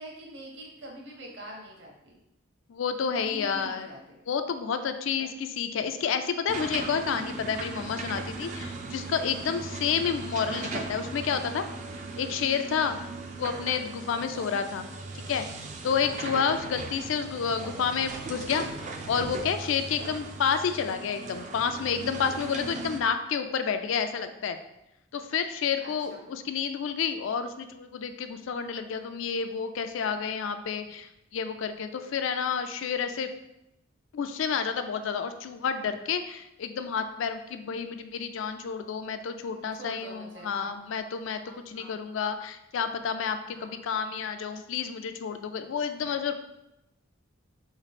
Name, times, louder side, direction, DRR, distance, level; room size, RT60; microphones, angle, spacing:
voice 1, 0.0-2.1 3.2-4.3 5.2-5.3 9.7-9.9 14.1-14.4 16.0-16.1 16.6-16.7 25.8-26.2 39.4-40.8 41.4-42.0 43.5-43.8, right 1 dB, 60° right, -1 dB, 1.1 m, -45 dB
voice 2, 2.7-3.9 4.3-11.6 12.2-13.0 13.4-14.9 15.3-15.5 15.8-24.6 25.1-33.3 34.1-46.3, left 6 dB, 75° left, 8 dB, 0.4 m, -30 dB
sound 1, 6.5-23.0, right 3 dB, 35° right, 0.4 m, -38 dB
3.7 x 3.0 x 4.1 m, 0.88 s
head